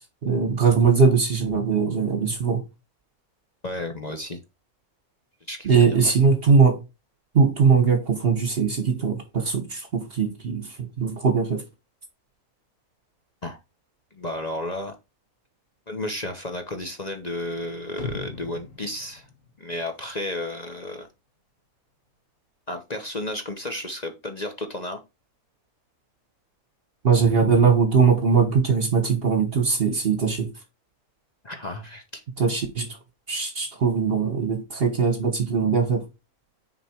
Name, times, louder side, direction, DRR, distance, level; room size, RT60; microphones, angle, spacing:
voice 1, 0.2-2.6 5.6-6.8 7.3-11.6 27.0-30.5 32.4-32.9 33.3-36.0, right 5 dB, 40° right, 1.4 m, -20 dB
voice 2, 3.6-4.4 5.5-6.0 13.4-13.6 14.1-14.9 15.9-19.3 19.6-21.1 22.7-25.0 31.4-32.2, left 1 dB, 35° left, 0.9 m, -32 dB
sound 1, 18.0-20.1 20.5-20.6, left 3 dB, 60° left, 1.8 m, -39 dB
6.7 x 4.4 x 4.5 m
omnidirectional pair, 1.6 m